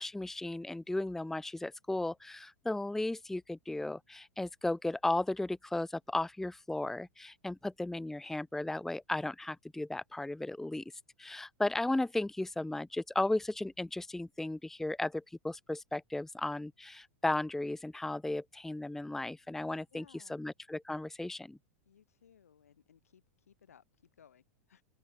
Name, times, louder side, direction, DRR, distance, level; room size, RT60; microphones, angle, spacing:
voice 1, 0.0-10.8 11.2-21.6, left 2 dB, 5° left, 0.6 m, -35 dB
voice 2, 19.9-20.4 21.8-24.8, left 8 dB, 80° left, 6.2 m, -62 dB
open air
hypercardioid pair, 100°, 8 cm